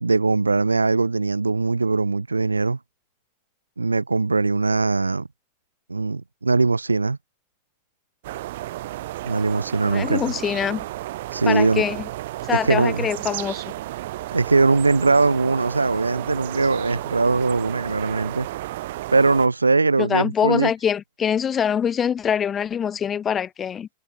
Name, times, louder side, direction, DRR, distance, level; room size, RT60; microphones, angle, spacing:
voice 1, 0.0-2.8 3.8-5.3 5.9-7.2 9.2-10.3 11.3-11.8 12.6-13.1 14.3-18.5 19.1-20.7, right 3 dB, 80° right, 1.9 m, -21 dB
sound 1, 8.2-19.5, right 16 dB, 55° right, 5.0 m, -33 dB
voice 2, 9.8-10.8 11.5-12.1 12.5-13.6 20.0-23.9, left 8 dB, 25° left, 1.1 m, -24 dB
figure-of-eight pair, 90°, 0 cm